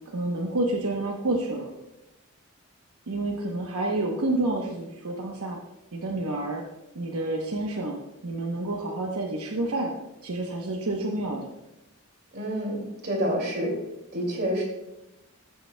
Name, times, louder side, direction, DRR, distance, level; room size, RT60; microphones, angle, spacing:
voice 1, 0.1-1.7 3.1-5.6 5.9-6.6 6.9-8.0 8.2-9.9 10.2-11.5, right 2 dB, 80° right, -1 dB, 0.9 m, -29 dB
voice 2, 12.3-13.7 14.1-14.6, equal, 45° right, -1 dB, 2.3 m, -28 dB
13.5 x 6.8 x 2.2 m, 0.93 s
head